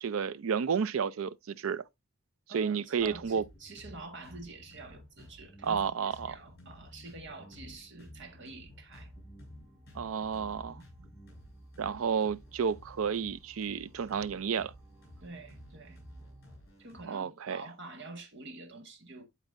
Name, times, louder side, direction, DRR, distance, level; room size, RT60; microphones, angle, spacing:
voice 1, 0.0-1.8 2.5-3.4 5.6-6.4 9.9-10.8 11.8-14.7 17.1-17.6, right 6 dB, 75° right, 0.4 m, -31 dB
voice 2, 2.5-9.1 10.8-10.9 15.2-16.0 16.8-19.2, right 3 dB, 55° right, 1.6 m, -47 dB
sound 1, 3.0-17.0, left 1 dB, 50° left, 5.4 m, -54 dB
sound 2, 8.9-16.6, right 1 dB, 10° right, 1.5 m, -55 dB
11.5 x 4.1 x 2.5 m
head